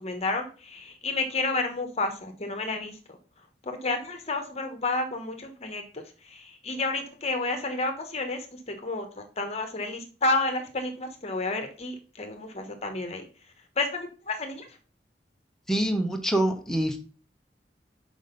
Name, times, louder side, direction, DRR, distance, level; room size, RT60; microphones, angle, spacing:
voice 1, 0.0-3.2 3.6-13.2 13.8-14.7, left 3 dB, 40° left, 6 dB, 1.2 m, -31 dB
voice 2, 15.7-17.0, right 1 dB, 5° left, 3 dB, 1.1 m, -25 dB
6.4 x 5.1 x 5.3 m, 0.36 s
head